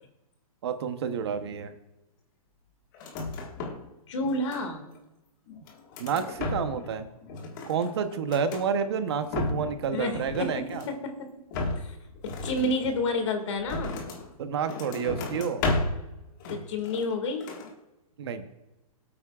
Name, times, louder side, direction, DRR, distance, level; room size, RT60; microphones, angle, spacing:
voice 1, 0.6-1.7 6.0-7.1 7.7-10.8 14.4-15.6 18.2-18.4, right 6 dB, 45° right, 9 dB, 0.9 m, -29 dB
sound 1, 2.9-3.9 4.2-5.0 5.5-6.9 7.2-8.7 9.1-9.8 10.1-11.0 11.5-14.3 14.7-16.1 16.4-17.2 17.4-17.7, left 2 dB, 30° left, 1.7 m, -34 dB
voice 2, 4.1-4.8 9.9-11.3 11.8-12.0 12.2-14.0 16.5-17.5, left 2 dB, 50° left, 5 dB, 2.1 m, -30 dB
22.5 x 8.6 x 2.4 m, 1.0 s
hypercardioid pair, 170°, 19 cm